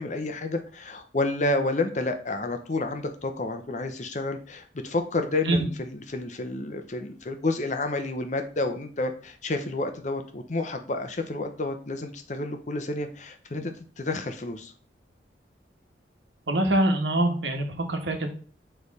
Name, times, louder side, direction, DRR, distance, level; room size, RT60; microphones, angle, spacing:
voice 1, 0.0-14.7, left 2 dB, 40° left, 6 dB, 0.7 m, -30 dB
voice 2, 16.5-18.3, right 1 dB, 85° right, 4 dB, 1.3 m, -24 dB
8.5 x 3.4 x 4.1 m, 0.41 s
head